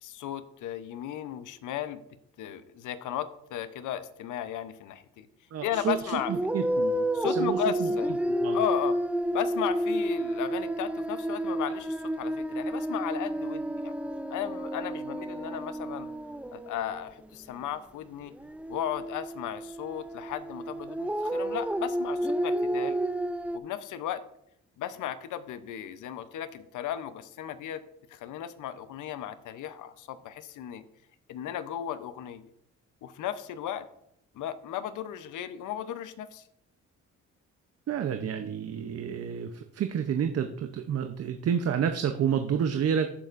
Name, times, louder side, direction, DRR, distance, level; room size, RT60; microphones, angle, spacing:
voice 1, 0.0-2.0 2.4-5.3 5.6-6.3 7.1-8.2 8.5-9.0 9.3-13.9 14.3-16.1 16.5-18.3 18.7-23.0 23.5-24.2 24.8-27.8 28.1-30.8 31.3-32.5 33.0-33.9 34.3-36.5, left 10 dB, 80° left, 12 dB, 0.8 m, -35 dB
voice 2, 5.5-7.6 8.3-8.6 37.9-43.1, right 8 dB, 55° right, 7 dB, 0.7 m, -30 dB
sound 1, 5.7-17.0 18.3-23.6, right 1 dB, 5° right, 0.3 m, -31 dB
14.5 x 6.7 x 2.5 m, 0.76 s
cardioid pair, 90°, 30 cm